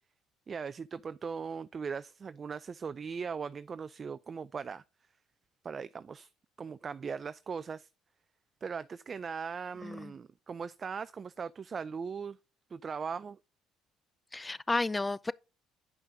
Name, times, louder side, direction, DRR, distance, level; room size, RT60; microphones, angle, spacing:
voice 1, 0.5-4.8 5.6-6.3 6.6-7.9 8.6-12.4 12.7-13.4, right 6 dB, 40° right, 0.4 m, -39 dB
voice 2, 9.8-10.1 14.3-15.3, left 2 dB, 20° left, 0.5 m, -32 dB
9.2 x 5.6 x 3.7 m
supercardioid pair, 70°, 0 cm